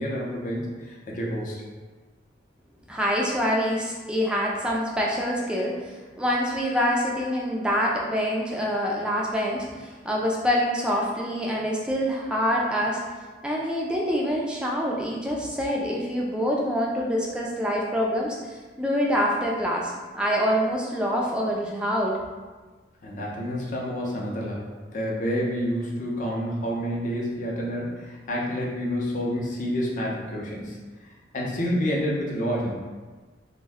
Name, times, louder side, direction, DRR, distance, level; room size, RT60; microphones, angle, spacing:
voice 1, 0.0-1.6 23.0-30.8 31.0-32.8, equal, 40° left, -3 dB, 0.5 m, -29 dB
voice 2, 2.9-13.0 13.4-22.2, equal, 5° right, -3 dB, 0.3 m, -26 dB
2.5 x 2.1 x 3.4 m, 1.3 s
head